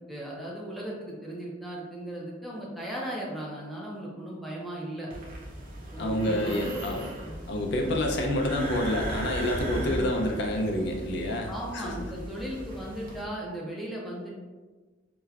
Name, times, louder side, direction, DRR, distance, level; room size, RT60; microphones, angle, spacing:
voice 1, 0.1-5.1 5.9-6.9 7.3-7.4 9.9-10.0 11.5-14.4, right 1 dB, ahead, -5 dB, 0.6 m, -37 dB
sound 1, 5.1-13.2, right 1 dB, 45° right, 0.7 m, -37 dB
voice 2, 6.0-7.0 7.5-12.1, left 1 dB, 60° left, 1 dB, 0.4 m, -28 dB
4.9 x 2.1 x 2.3 m, 1.3 s
head